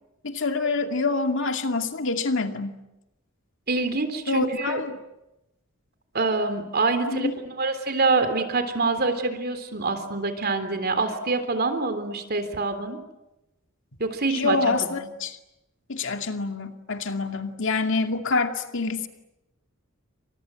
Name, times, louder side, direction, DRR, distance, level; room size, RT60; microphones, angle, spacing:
voice 1, 0.2-2.8 4.3-5.0 7.1-7.3 14.3-15.4 15.9-19.1, left 3 dB, 60° left, 6 dB, 2.4 m, -26 dB
voice 2, 3.7-4.8 6.1-13.0 14.0-15.1, right 3 dB, 50° right, 9 dB, 3.4 m, -26 dB
29.5 x 26.0 x 7.8 m, 0.94 s
head